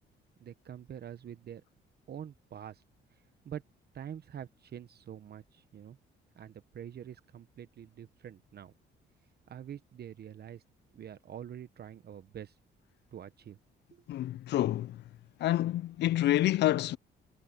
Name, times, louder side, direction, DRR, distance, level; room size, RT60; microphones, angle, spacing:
voice 1, 0.4-1.6 2.1-2.8 3.1-3.6 3.9-6.0 6.4-8.7 9.5-10.6 10.9-12.6 13.1-13.6 13.9-14.0, right 9 dB, 55° right, 1.0 m, -46 dB
voice 2, 14.1-15.0 15.4-17.0, left 14 dB, 60° left, 0.4 m, -28 dB
cardioid pair, 90°, 20 cm